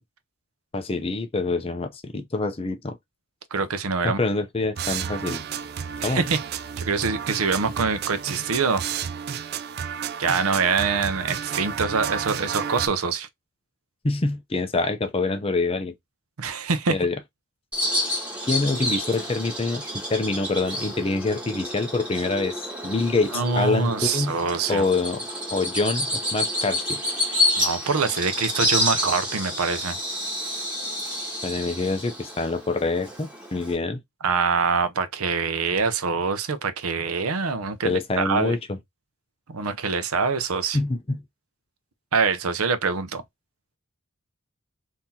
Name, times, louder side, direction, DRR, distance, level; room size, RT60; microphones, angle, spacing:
voice 1, 0.7-3.0 4.0-5.4 6.0-6.2 14.0-15.9 16.9-17.2 18.5-19.8 20.1-24.4 24.7-25.2 25.5-27.0 31.4-34.0 37.8-38.6 40.7-41.2, left 3 dB, 25° left, 0.5 m, -25 dB
voice 2, 3.5-4.2 6.0-6.4 6.8-8.8 10.2-13.3 16.4-17.0 23.3-24.9 27.6-30.0 34.2-38.6 39.5-40.8 42.1-43.2, right 5 dB, 85° right, 0.7 m, -24 dB
sound 1, 4.8-12.9, right 8 dB, 50° right, 0.3 m, -31 dB
Bird vocalization bird call bird song, 17.7-33.7, left 1 dB, 5° right, 1.3 m, -29 dB
3.8 x 2.8 x 2.7 m
head